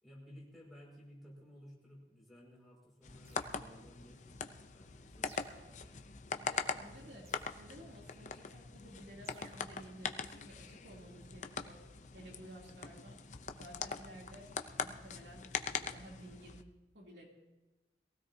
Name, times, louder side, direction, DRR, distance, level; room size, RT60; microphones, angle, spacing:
voice 1, 0.0-5.7, equal, ahead, -5 dB, 5.6 m, -57 dB
sound 1, 3.0-16.6, left 5 dB, 45° left, 0.7 m, -42 dB
sound 2, 3.2-4.1 5.2-6.1 7.2-8.1 9.2-10.1, right 3 dB, 35° right, 1.3 m, -60 dB
voice 2, 6.4-11.8 12.1-13.2 13.5-14.5 14.8-16.6 16.9-17.3, equal, 75° right, -2 dB, 3.0 m, -54 dB
22.0 x 16.0 x 2.8 m, 1.1 s
head